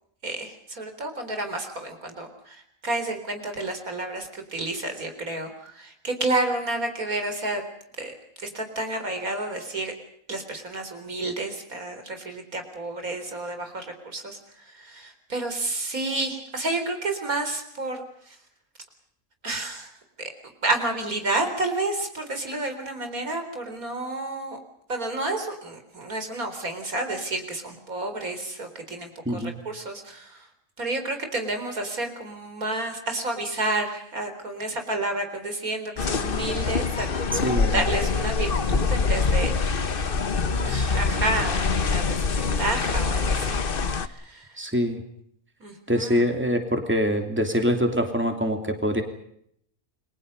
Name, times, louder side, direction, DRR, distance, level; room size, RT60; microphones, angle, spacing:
voice 1, 0.2-7.6 8.0-9.9 10.3-18.4 19.4-24.6 24.9-30.5 30.8-37.1 37.7-40.0 40.6-44.6 45.6-46.3, right 2 dB, 80° right, 6 dB, 4.6 m, -30 dB
voice 2, 29.2-29.6 37.4-37.8 44.6-45.0 45.9-49.0, equal, 10° right, 5 dB, 3.0 m, -24 dB
sound 1, 36.0-44.1, left 4 dB, 40° left, 1.2 m, -25 dB
30.0 x 23.0 x 5.5 m, 0.70 s
omnidirectional pair, 1.5 m